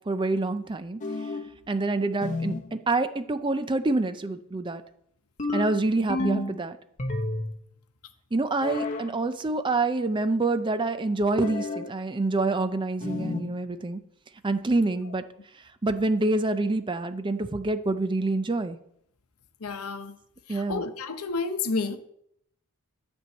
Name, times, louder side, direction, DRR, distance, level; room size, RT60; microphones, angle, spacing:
voice 1, 0.1-1.0 1.7-4.8 5.5-6.8 8.3-14.0 14.4-15.2 15.8-18.8 20.5-20.8, right 2 dB, 20° right, 0.5 m, -26 dB
sound 1, 1.0-1.6 2.2-2.7 5.4-6.6 7.0-7.6 8.6-9.1 11.4-11.9 13.0-13.5, left 2 dB, 35° left, 0.9 m, -31 dB
voice 2, 19.6-20.1 20.5-22.0, left 4 dB, 80° left, 0.8 m, -30 dB
9.8 x 4.5 x 7.6 m
head